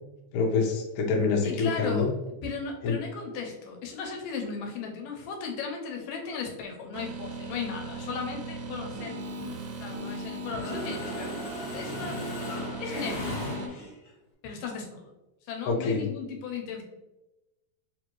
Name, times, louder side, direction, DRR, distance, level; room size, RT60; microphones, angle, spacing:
voice 1, 0.3-2.1 2.8-3.0 15.7-16.1, left 4 dB, 75° left, 0 dB, 1.8 m, -26 dB
voice 2, 1.4-2.1 2.4-9.2 9.8-11.3 11.7-12.3 12.8-13.4 14.4-15.1 15.5-16.8, left 5 dB, 90° left, 2 dB, 2.3 m, -36 dB
sound 1, 6.9-13.7, right 2 dB, 85° right, 2.2 m, -38 dB
Mechanisms, 9.3-10.2 10.5-14.1, left 1 dB, 50° left, 1.8 m, -37 dB
5.0 x 2.5 x 3.0 m, 1.0 s
omnidirectional pair, 3.8 m